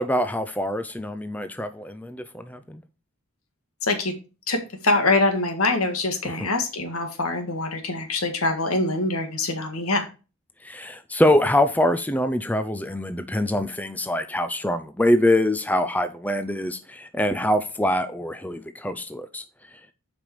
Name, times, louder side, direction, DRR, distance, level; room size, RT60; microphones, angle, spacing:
voice 1, 0.0-2.8 6.2-6.5 10.6-19.4, left 1 dB, 5° left, 0.5 m, -24 dB
voice 2, 3.8-4.1 4.5-10.1, left 2 dB, 90° left, 1.8 m, -24 dB
7.2 x 5.2 x 4.8 m
head